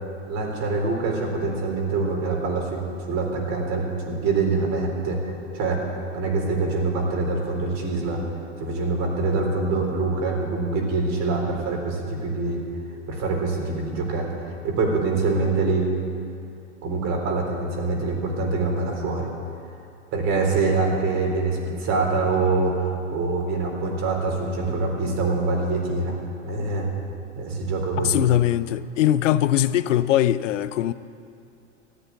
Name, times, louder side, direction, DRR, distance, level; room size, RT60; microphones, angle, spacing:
voice 1, 0.3-2.8 3.1-8.2 8.6-12.6 13.1-15.9 16.8-19.3 20.1-26.2 26.4-26.9 27.4-28.2, right 3 dB, 45° right, 3.9 m, -25 dB
voice 2, 28.0-30.9, left 12 dB, 75° left, 0.6 m, -21 dB
14.0 x 9.3 x 9.6 m
hypercardioid pair, 95°, 37 cm